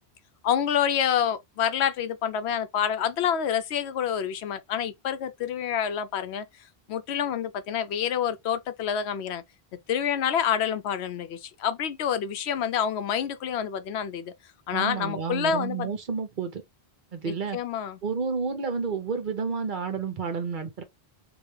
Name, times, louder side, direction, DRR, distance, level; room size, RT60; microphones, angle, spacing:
voice 1, 0.4-6.4 6.9-9.4 9.9-14.3 14.7-15.9 17.3-18.0, left 8 dB, 85° left, 0.9 m, -27 dB
voice 2, 14.7-16.6 17.1-17.6 18.0-20.8, right 5 dB, 55° right, 0.9 m, -30 dB
4.0 x 2.3 x 3.1 m
omnidirectional pair, 1.1 m